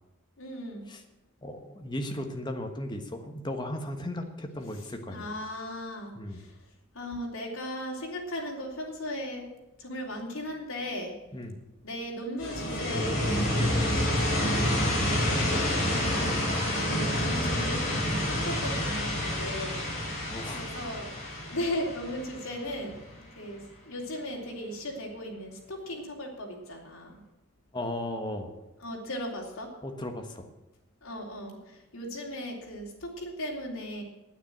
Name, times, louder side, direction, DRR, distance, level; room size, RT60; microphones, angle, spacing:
voice 1, 0.4-0.9 5.1-6.6 6.9-9.5 9.8-11.1 11.8-16.1 17.1-21.1 21.4-27.2 28.8-29.7 31.0-34.0, equal, 85° left, -1 dB, 3.3 m, -37 dB
voice 2, 1.4-5.3 6.1-6.4 11.3-11.6 16.1-16.4 20.3-20.6 21.2-21.5 27.7-28.5 29.8-30.5, left 1 dB, 20° left, 5 dB, 1.3 m, -36 dB
sound 1, 12.4-23.1, left 1 dB, 40° left, 4.5 m, -28 dB
9.7 x 9.3 x 8.7 m, 0.99 s
head